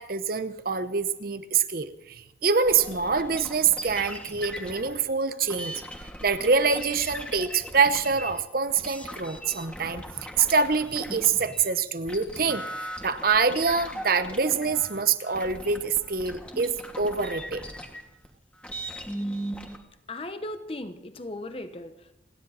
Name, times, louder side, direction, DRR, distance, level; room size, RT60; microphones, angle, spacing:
voice 1, 0.0-5.7 6.2-10.0 10.3-12.6 13.0-17.6, right 5 dB, 50° right, 0.9 m, -25 dB
sound 1, 2.6-11.7 12.0-19.8, equal, 5° left, 1.3 m, -39 dB
voice 2, 20.1-22.1, left 1 dB, 30° left, 1.0 m, -37 dB
29.5 x 10.5 x 4.2 m
head